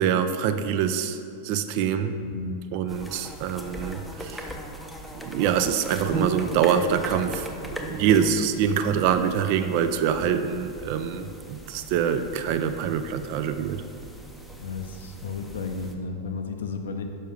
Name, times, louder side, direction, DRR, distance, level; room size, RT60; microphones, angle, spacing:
voice 1, 0.0-2.1 2.7-4.6 5.2-13.8, right 8 dB, 45° right, 9 dB, 0.3 m, -25 dB
voice 2, 2.1-2.6 14.6-17.0, left 4 dB, 65° left, 5 dB, 0.5 m, -33 dB
sound 1, 2.9-15.9, right 1 dB, ahead, 0.6 m, -38 dB
6.4 x 5.4 x 3.3 m, 2.5 s
figure-of-eight pair, 90°, 0 cm